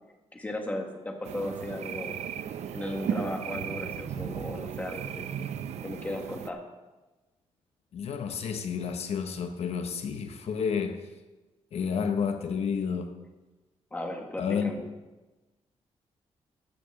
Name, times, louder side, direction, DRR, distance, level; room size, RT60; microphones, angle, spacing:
voice 1, 0.3-2.1 2.7-5.3 5.8-6.6 13.9-14.9, left 1 dB, 15° left, 1.5 m, -36 dB
sound 1, 1.2-6.5, right 8 dB, 80° right, 0.6 m, -35 dB
voice 2, 7.9-11.1 11.7-13.2 14.4-14.9, left 6 dB, 65° left, 0.9 m, -30 dB
14.0 x 6.8 x 6.4 m
wide cardioid pair, 165°, 11 cm